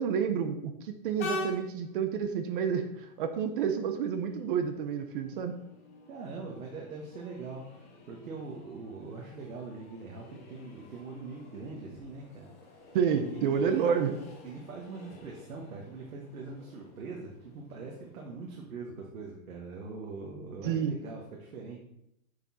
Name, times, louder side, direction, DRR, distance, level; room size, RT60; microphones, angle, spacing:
voice 1, 0.0-5.6 12.9-14.2 20.6-21.0, right 7 dB, 40° right, 8 dB, 0.8 m, -29 dB
Train, 1.2-18.5, left 2 dB, 10° left, 0.4 m, -47 dB
voice 2, 6.1-12.8 13.2-14.0 14.4-21.8, right 3 dB, 80° right, -1 dB, 1.7 m, -42 dB
7.1 x 6.6 x 4.2 m, 0.77 s
hypercardioid pair, 155°, 42 cm